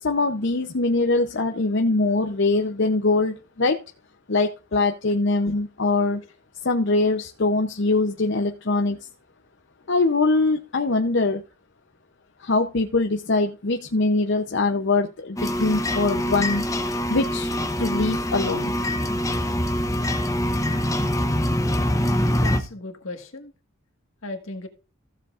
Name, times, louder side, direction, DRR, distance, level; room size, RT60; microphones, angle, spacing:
voice 1, 0.0-3.8 4.3-6.2 6.6-9.0 9.9-11.4 12.4-16.7 17.1-18.7, left 3 dB, 60° left, 4 dB, 0.7 m, -22 dB
sound 1, 15.4-22.6, left 1 dB, 15° left, 0.7 m, -24 dB
voice 2, 22.3-23.5 24.2-24.7, left 2 dB, 75° left, 5 dB, 1.7 m, -36 dB
15.0 x 7.4 x 2.5 m, 0.32 s
head